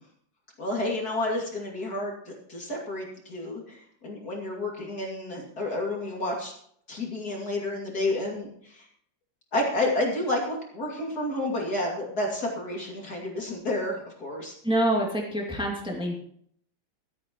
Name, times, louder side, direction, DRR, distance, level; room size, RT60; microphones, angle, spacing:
voice 1, 0.6-6.5 6.9-8.8 9.5-14.5, left 1 dB, 45° left, -1 dB, 3.1 m, -30 dB
voice 2, 14.6-16.2, right 1 dB, ahead, -2 dB, 2.4 m, -26 dB
25.0 x 8.8 x 3.1 m, 0.64 s
omnidirectional pair, 2.3 m